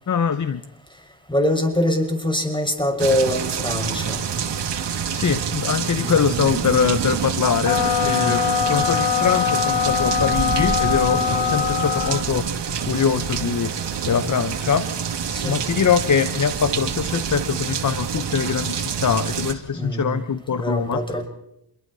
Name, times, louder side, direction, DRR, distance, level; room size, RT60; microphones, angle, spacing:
voice 1, 0.1-0.6 5.1-12.5 12.8-13.7 14.1-14.9 15.4-21.0, left 7 dB, 40° left, 12 dB, 1.1 m, -23 dB
voice 2, 1.3-4.2 6.0-6.3 8.1-8.4 11.1-11.6 15.3-15.6 19.7-20.2 20.5-21.3, left 1 dB, 10° left, 5 dB, 5.9 m, -24 dB
sound 1, 3.0-19.5, right 7 dB, 65° right, 2.3 m, -27 dB
sound 2, 7.6-12.3, left 10 dB, 65° left, 1.3 m, -22 dB
28.0 x 22.0 x 4.2 m, 0.80 s
cardioid pair, 65°, 45 cm